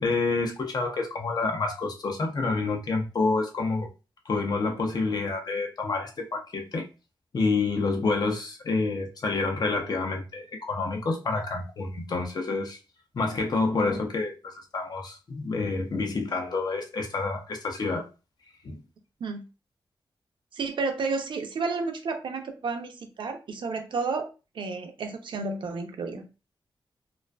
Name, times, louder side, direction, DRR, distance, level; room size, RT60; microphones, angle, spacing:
voice 1, 0.0-3.9 4.3-6.9 7.3-12.8 13.1-18.1 18.6-18.8, left 3 dB, 50° left, 0.5 m, -28 dB
voice 2, 20.5-24.3 24.5-26.2, right 4 dB, 70° right, 0.5 m, -31 dB
2.4 x 2.3 x 2.2 m
wide cardioid pair, 145°, 9 cm